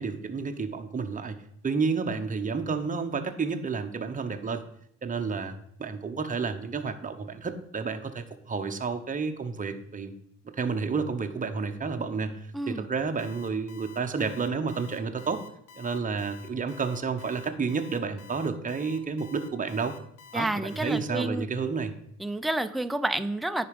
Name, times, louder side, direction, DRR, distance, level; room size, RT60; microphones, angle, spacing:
voice 1, 0.0-1.4 1.6-4.6 5.0-10.1 10.6-15.4 15.8-19.9 20.3-21.9, right 5 dB, 25° right, 6 dB, 0.9 m, -30 dB
Alarm, 13.2-21.0, left 7 dB, 85° left, 1.1 m, -50 dB
voice 2, 20.3-21.5 22.2-23.7, right 1 dB, ahead, 10 dB, 0.4 m, -29 dB
9.6 x 4.8 x 5.2 m, 0.72 s
cardioid pair, 90°, 30 cm